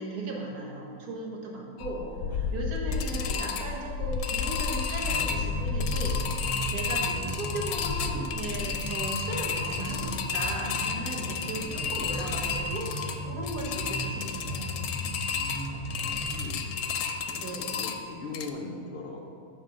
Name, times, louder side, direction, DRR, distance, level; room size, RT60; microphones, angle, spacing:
voice 1, 0.0-2.0 2.3-14.7 17.4-17.8, right 2 dB, 75° right, -2 dB, 1.7 m, -37 dB
voice 2, 1.7-2.4 2.9-3.2 7.0-7.2 11.5-11.7 15.7-19.4, left 3 dB, 60° left, -2 dB, 0.5 m, -43 dB
sound 1, 1.8-18.5, left 5 dB, 75° left, 1.0 m, -32 dB
sound 2, 5.0-16.6, equal, ahead, 1.2 m, -36 dB
7.6 x 4.7 x 6.2 m, 2.4 s
omnidirectional pair, 1.6 m